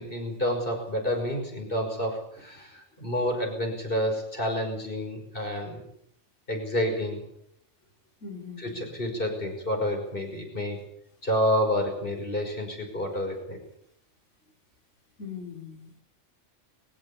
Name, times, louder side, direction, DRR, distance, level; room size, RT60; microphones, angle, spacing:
voice 1, 0.0-5.8 6.5-7.2 8.6-10.9 11.2-13.6, equal, 45° left, 2 dB, 5.7 m, -29 dB
voice 2, 8.2-8.9 15.2-16.0, left 6 dB, 80° left, -1 dB, 4.9 m, -41 dB
22.5 x 15.5 x 8.5 m, 0.73 s
omnidirectional pair, 1.2 m